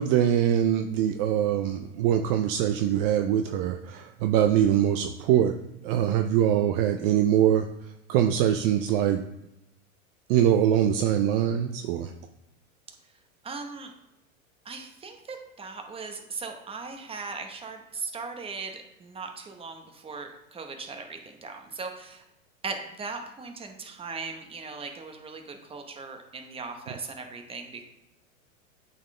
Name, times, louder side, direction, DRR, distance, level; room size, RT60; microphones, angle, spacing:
voice 1, 0.0-5.5 5.8-7.7 8.1-9.2 10.3-12.1, right 10 dB, 45° right, 6 dB, 0.5 m, -23 dB
voice 2, 13.4-13.9 14.6-22.2 22.6-27.8, right 4 dB, 15° right, 4 dB, 0.9 m, -38 dB
8.6 x 4.2 x 3.2 m, 0.89 s
hypercardioid pair, 120°, 42 cm